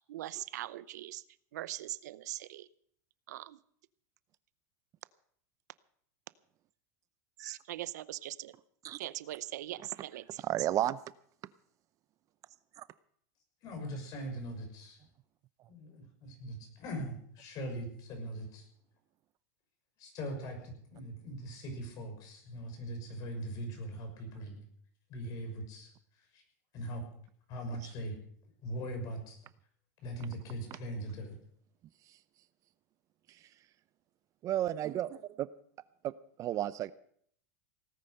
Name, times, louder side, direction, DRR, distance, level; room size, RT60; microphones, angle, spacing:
voice 1, 0.1-1.2 1.5-2.7 3.3-3.6 7.4-8.5 9.0-10.4, right 14 dB, 80° right, 18 dB, 0.7 m, -41 dB
voice 2, 10.4-11.0 12.8-12.9 34.4-35.5 36.4-36.9, right 12 dB, 35° right, 16 dB, 0.6 m, -32 dB
voice 3, 13.6-15.0 15.7-18.7 20.0-24.6 25.1-25.9 26.3-26.4 26.7-27.0 27.5-28.2 28.6-29.4 30.0-31.4, right 1 dB, 45° left, 4 dB, 6.1 m, -41 dB
18.0 x 10.0 x 6.6 m, 0.63 s
supercardioid pair, 125°, 9 cm